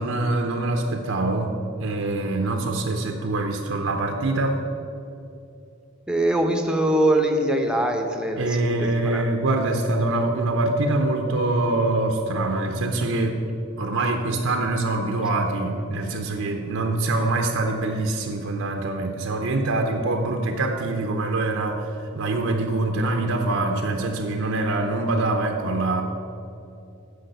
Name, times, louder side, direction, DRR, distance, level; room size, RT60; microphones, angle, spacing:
voice 1, 0.0-1.5 1.8-4.6 8.4-13.4 13.8-26.0, right 2 dB, 70° right, 4 dB, 0.7 m, -24 dB
voice 2, 6.1-9.3 14.0-14.1, right 1 dB, 5° right, 4 dB, 0.7 m, -23 dB
10.5 x 5.0 x 6.7 m, 2.7 s
head